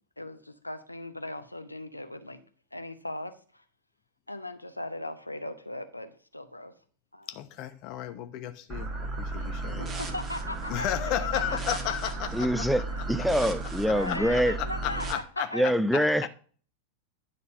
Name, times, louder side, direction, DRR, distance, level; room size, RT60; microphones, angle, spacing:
voice 1, 0.2-2.4 2.7-3.6 4.3-6.7 7.1-7.3 9.4-9.5 9.8-12.1 12.4-12.5 13.9-15.7 16.0-16.3, left 1 dB, 85° left, 0.7 m, -38 dB
voice 2, 7.3-9.9 10.7-12.6 14.8-15.7, left 12 dB, 40° left, 1.0 m, -33 dB
sound 1, 8.7-15.1, right 3 dB, 20° right, 1.6 m, -34 dB
voice 3, 12.3-12.8 13.1-14.6 15.5-16.3, equal, ahead, 0.4 m, -25 dB
10.0 x 4.1 x 6.4 m
figure-of-eight pair, 90°, 0 cm